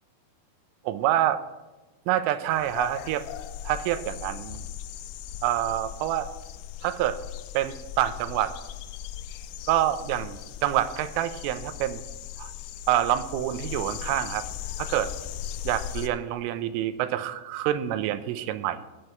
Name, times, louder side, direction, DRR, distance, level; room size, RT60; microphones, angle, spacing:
voice 1, 0.8-1.4 2.1-3.3 3.6-4.6 5.4-6.3 6.8-7.2 7.5-8.6 9.7-12.0 12.4-12.5 12.9-14.5 14.8-15.1 15.6-18.8, right 12 dB, 90° right, 11 dB, 3.3 m, -27 dB
sound 1, 2.5-16.1, left 10 dB, 85° left, 3.3 m, -38 dB
17.0 x 9.7 x 4.5 m, 1.1 s
omnidirectional pair, 5.6 m